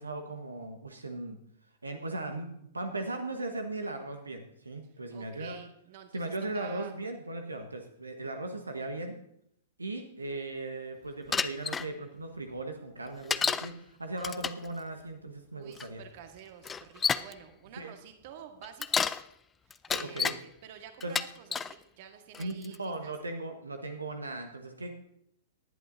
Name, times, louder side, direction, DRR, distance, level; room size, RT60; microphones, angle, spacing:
voice 1, 0.0-1.4 1.8-5.6 6.1-9.2 9.8-13.7 14.0-16.0 17.8-17.9 19.9-20.3 21.0-21.1 22.4-24.9, right 2 dB, 80° right, 5 dB, 1.2 m, -38 dB
voice 2, 5.1-6.9 15.5-19.1 19.7-23.1, right 9 dB, 45° right, 6 dB, 1.6 m, -49 dB
Bicycle, 11.3-11.9 13.3-13.7 14.2-14.7 15.8-15.9 16.6-17.3 18.6-19.2 19.7-20.4 21.0-21.7 22.3-22.8, left 6 dB, 15° left, 0.4 m, -30 dB
19.0 x 11.0 x 2.7 m, 0.73 s
figure-of-eight pair, 105°, 0 cm